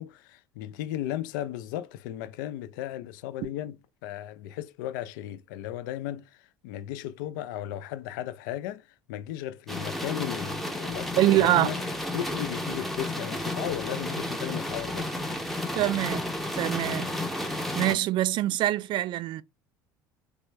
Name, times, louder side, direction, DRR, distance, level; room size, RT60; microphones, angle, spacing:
voice 1, 0.0-11.8 12.1-15.1, left 12 dB, 60° left, 0.4 m, -35 dB
sound 1, 9.7-18.0, left 1 dB, ahead, 0.7 m, -32 dB
voice 2, 11.2-11.7 15.8-16.3 16.6-17.1 17.5-19.4, right 14 dB, 45° right, 0.4 m, -24 dB
3.3 x 3.1 x 3.2 m
figure-of-eight pair, 65°, 12 cm